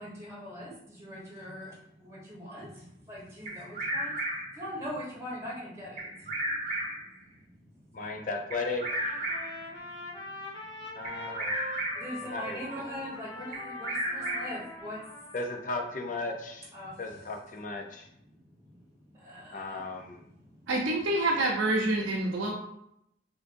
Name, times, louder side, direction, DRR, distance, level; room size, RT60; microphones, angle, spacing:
voice 1, 0.0-4.2 4.5-6.9 7.4-8.0 9.7-10.4 11.0-11.1 11.7-15.3 16.7-17.0 18.3-18.8 19.1-19.8 20.2-20.7, equal, 15° right, -6 dB, 1.0 m, -42 dB
Bird vocalization bird call bird song, 3.4-4.6 6.0-7.1 8.5-9.7 11.0-12.2 13.5-14.7, right 1 dB, 40° right, 0.8 m, -33 dB
voice 2, 7.9-9.1 11.0-11.7 12.2-12.6 15.3-16.7 17.0-18.1 19.5-20.2, left 3 dB, 45° left, 2 dB, 0.5 m, -36 dB
Trumpet, 8.8-15.7, left 1 dB, 25° left, 1.0 m, -43 dB
voice 3, 20.7-22.5, right 2 dB, 85° right, -3 dB, 0.6 m, -27 dB
3.6 x 2.5 x 2.5 m, 0.75 s
head